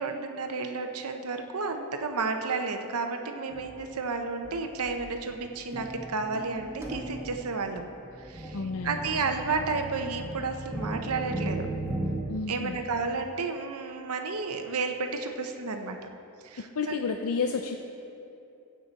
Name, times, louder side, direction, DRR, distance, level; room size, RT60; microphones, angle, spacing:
voice 1, 0.0-7.9 8.2-8.6 8.8-11.7 12.5-16.1 16.4-17.0, right 4 dB, 70° right, 5 dB, 0.8 m, -32 dB
sound 1, 3.5-3.8 4.4-4.6 4.8-12.2, right 2 dB, 10° right, 1.6 m, -37 dB
voice 2, 8.5-9.0 12.3-12.8 16.6-17.8, left 5 dB, 70° left, 4 dB, 0.5 m, -31 dB
15.0 x 8.5 x 4.1 m, 2.8 s
head